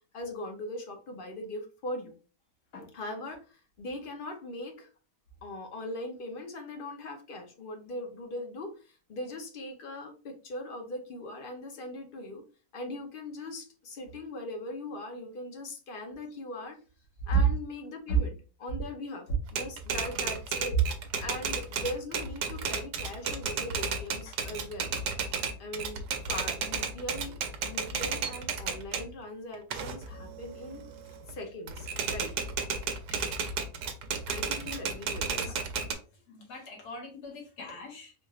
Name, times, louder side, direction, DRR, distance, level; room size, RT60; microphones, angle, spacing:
voice 1, 0.1-2.1 2.9-4.9 5.4-12.4 12.7-16.8 17.3-20.8 21.2-24.9 25.6-27.4 27.6-30.8 31.3-32.3 34.3-35.6, left 1 dB, 50° left, 4 dB, 0.7 m, -40 dB
Typewriter, 19.5-29.1 29.5-31.3 31.7-35.9, right 5 dB, 85° right, 1.2 m, -33 dB
voice 2, 36.3-38.1, right 4 dB, 80° left, -1 dB, 1.8 m, -33 dB
4.3 x 3.0 x 2.4 m, 0.35 s
omnidirectional pair, 1.7 m